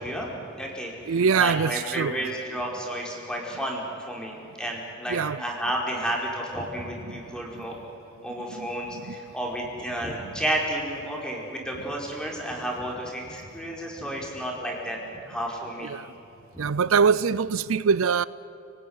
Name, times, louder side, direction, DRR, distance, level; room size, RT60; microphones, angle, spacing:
voice 1, 0.0-7.7 8.2-15.0 15.2-15.9 16.5-16.7, right 1 dB, 5° left, 5.1 m, -32 dB
voice 2, 1.1-2.1 5.1-5.4 7.1-7.2 7.6-7.7 8.5-8.7 9.1-9.2 15.8-16.0 16.6-18.2, right 6 dB, 75° right, 0.5 m, -23 dB
29.5 x 19.5 x 9.7 m
head